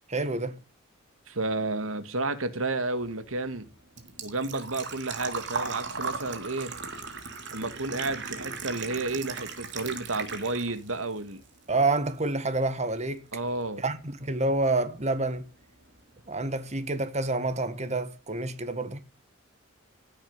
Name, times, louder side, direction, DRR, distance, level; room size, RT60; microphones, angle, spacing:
voice 1, 0.1-0.6 11.7-13.2 13.8-15.5 16.3-19.0, right 2 dB, 35° right, 1.7 m, -28 dB
voice 2, 1.3-3.7 4.2-6.7 7.5-11.4 13.3-13.8, right 2 dB, 80° right, 2.0 m, -31 dB
Engine / Trickle dribble / Fill (with liquid), 3.0-11.0 11.3-12.3 12.6-12.7 14.6-14.7 14.8-15.2 15.6-15.7 15.9-16.0, right 4 dB, 60° right, 3.3 m, -37 dB
16.5 x 8.8 x 9.6 m
head